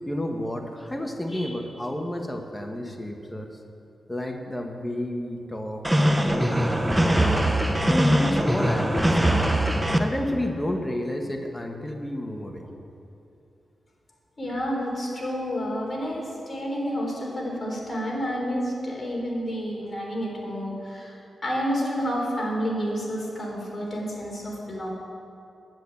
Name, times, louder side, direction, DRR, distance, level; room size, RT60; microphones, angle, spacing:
voice 1, 0.0-3.5 4.1-7.5 7.9-9.3 10.0-12.6, left 1 dB, 15° left, 3 dB, 1.2 m, -31 dB
sound 1, 5.8-10.0, right 1 dB, 10° right, 0.9 m, -21 dB
voice 2, 14.4-21.1 21.4-24.9, equal, 35° left, -2 dB, 3.6 m, -29 dB
10.5 x 8.1 x 8.5 m, 2.6 s
cardioid pair, 90°, 0 cm